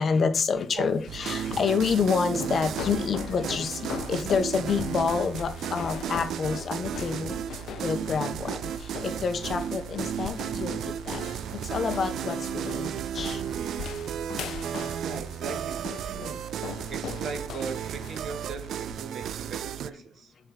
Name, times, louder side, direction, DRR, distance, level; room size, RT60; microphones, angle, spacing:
voice 1, 0.0-11.2 11.5-13.4, left 5 dB, 45° left, 0.9 m, -28 dB
sound 1, 0.5-19.8, left 9 dB, 85° left, 0.4 m, -41 dB
sound 2, 1.1-19.9, right 9 dB, 85° right, 0.3 m, -34 dB
voice 2, 2.6-3.0 15.0-16.5 16.9-20.3, right 4 dB, 55° right, 1.1 m, -39 dB
7.2 x 4.6 x 3.9 m
wide cardioid pair, 155°, 0 cm